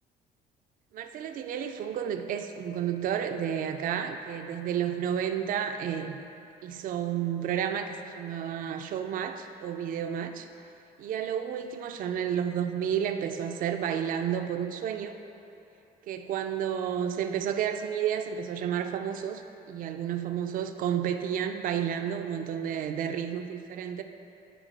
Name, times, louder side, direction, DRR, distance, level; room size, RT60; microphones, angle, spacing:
voice 1, 0.9-6.3 6.6-10.5 11.0-15.1 16.1-19.4 19.7-24.0, right 9 dB, 55° right, 7 dB, 0.4 m, -31 dB
10.0 x 4.2 x 3.3 m, 2.9 s
cardioid pair, 110°, 17 cm